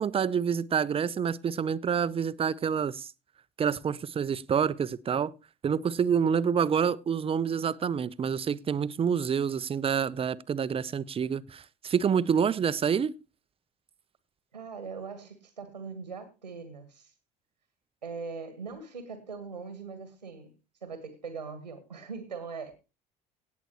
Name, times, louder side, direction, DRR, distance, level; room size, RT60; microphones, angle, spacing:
voice 1, 0.0-3.1 3.6-5.3 5.6-13.1, right 7 dB, 25° right, 0.7 m, -27 dB
voice 2, 14.5-17.1 18.0-20.5 20.8-22.7, right 5 dB, 90° right, 1.5 m, -41 dB
18.0 x 8.1 x 3.1 m
figure-of-eight pair, 60°, 21 cm